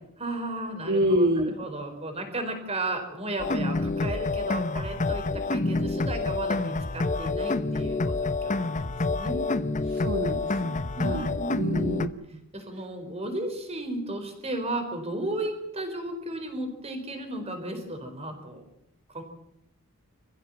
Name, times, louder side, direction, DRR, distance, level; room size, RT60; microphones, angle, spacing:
voice 1, 0.2-8.7 9.1-9.8 10.9-12.0 12.5-18.6 19.1-19.2, right 2 dB, 30° right, 6 dB, 4.7 m, -34 dB
voice 2, 0.9-1.5 9.9-11.3 11.6-12.1, equal, 50° right, 3 dB, 1.6 m, -26 dB
sound 1, 3.4-12.1, left 3 dB, 35° left, 0.9 m, -28 dB
26.5 x 15.5 x 7.4 m, 0.79 s
head